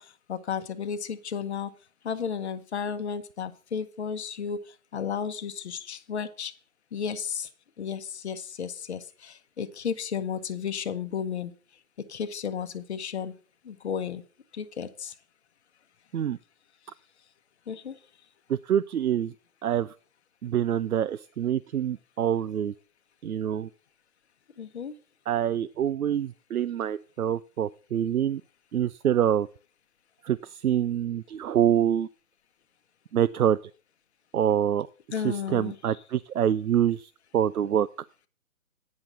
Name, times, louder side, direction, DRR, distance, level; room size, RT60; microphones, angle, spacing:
voice 1, 0.0-1.7 2.0-6.5 6.9-7.5 7.8-11.5 12.1-13.3 13.6-14.2 14.5-15.2 17.7-18.0 24.6-24.9 35.1-35.8, left 7 dB, 50° left, 10 dB, 1.0 m, -33 dB
voice 2, 18.5-19.3 19.6-19.9 20.4-22.7 23.2-23.7 25.3-28.4 28.7-29.5 30.2-32.1 33.1-33.6 34.3-34.9 35.2-37.9, right 10 dB, 85° right, 14 dB, 0.5 m, -26 dB
9.6 x 5.9 x 6.4 m, 0.38 s
figure-of-eight pair, 145°, 43 cm